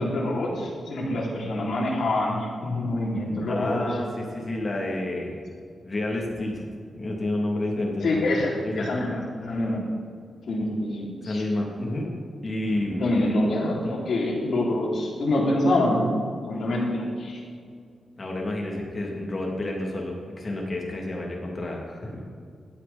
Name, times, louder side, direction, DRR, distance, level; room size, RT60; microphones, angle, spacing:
voice 1, 0.0-3.8 8.0-9.8 10.5-11.4 12.9-16.1 16.4-17.4, left 1 dB, 65° left, -3 dB, 3.8 m, -26 dB
voice 2, 3.5-5.4 5.8-6.6 7.0-8.4 8.6-9.0 11.2-12.1 12.4-13.2 18.2-22.3, left 1 dB, 30° left, -1 dB, 2.9 m, -30 dB
16.5 x 12.5 x 4.4 m, 2.2 s
wide cardioid pair, 115°, 0 cm